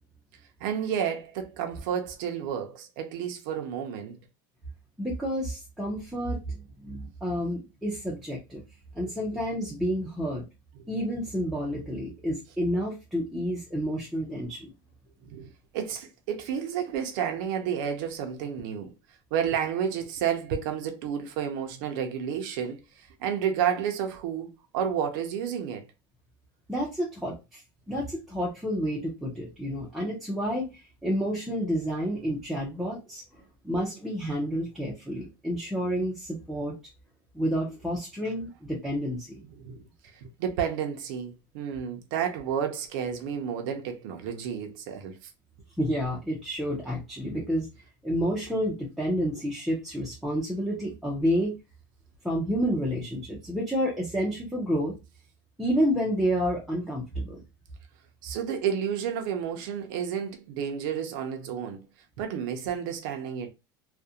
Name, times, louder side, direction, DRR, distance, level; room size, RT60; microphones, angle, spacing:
voice 1, 0.6-4.2 15.2-18.9 19.3-25.8 39.6-39.8 40.1-45.3 58.2-61.8 62.2-63.5, right 8 dB, 65° right, 0.5 m, -31 dB
voice 2, 5.0-8.6 8.9-10.4 10.9-14.7 26.7-27.6 27.9-33.2 33.6-36.8 37.3-39.4 45.8-47.7 48.0-51.6 52.2-54.9 55.6-57.4, equal, ahead, 0.4 m, -29 dB
2.4 x 2.1 x 2.6 m
cardioid pair, 170°, 12 cm